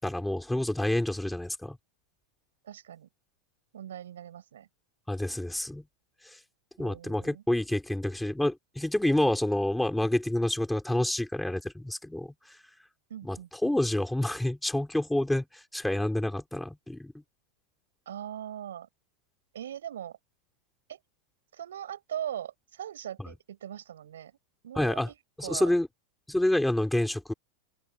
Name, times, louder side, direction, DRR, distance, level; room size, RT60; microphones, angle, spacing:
voice 1, 0.0-1.8 5.1-5.8 6.2-6.4 6.8-12.6 13.2-17.1 23.2-23.3 24.8-25.1 25.4-25.9 26.3-27.3, left 1 dB, 5° left, 4.4 m, -28 dB
voice 2, 2.6-3.1 3.7-4.7 6.8-7.4 13.1-13.7 18.1-18.9 19.5-20.2 20.9-21.0 21.5-24.3 24.6-25.7, right 10 dB, 75° right, 7.0 m, -40 dB
open air
hypercardioid pair, 95°, 0 cm